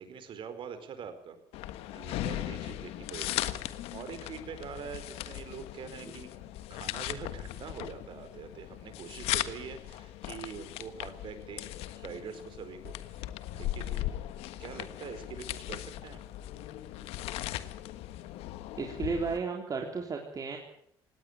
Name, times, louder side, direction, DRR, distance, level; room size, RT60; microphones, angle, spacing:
voice 1, 0.0-1.4 1.9-6.3 6.7-14.2 14.6-16.3, right 6 dB, 55° right, 10 dB, 4.6 m, -44 dB
sound 1, 1.5-19.4, left 14 dB, 80° left, 1.4 m, -38 dB
voice 2, 18.8-20.6, right 4 dB, 35° right, 1 dB, 3.8 m, -33 dB
18.5 x 18.0 x 8.9 m, 0.68 s
supercardioid pair, 90°, 10 cm